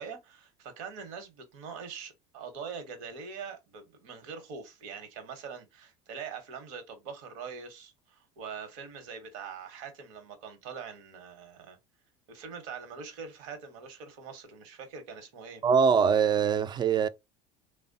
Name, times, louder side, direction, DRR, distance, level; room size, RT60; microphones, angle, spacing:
voice 1, 0.0-11.8 12.3-15.6, right 6 dB, 70° right, 1.0 m, -43 dB
voice 2, 15.6-17.1, right 6 dB, 25° right, 0.3 m, -23 dB
3.2 x 2.1 x 2.6 m
hypercardioid pair, 85°, 18 cm